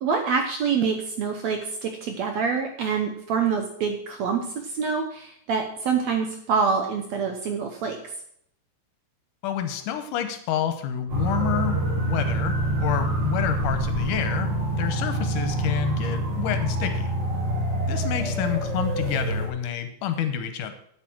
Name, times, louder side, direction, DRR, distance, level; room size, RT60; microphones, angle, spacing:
voice 1, 0.0-8.0, right 5 dB, 70° right, 5 dB, 1.7 m, -26 dB
voice 2, 9.4-14.5 14.8-17.1 17.9-20.7, left 9 dB, 75° left, 8 dB, 2.3 m, -29 dB
sound 1, 11.1-19.5, right 1 dB, 40° right, 2.9 m, -26 dB
8.7 x 8.1 x 6.1 m, 0.68 s
omnidirectional pair, 4.0 m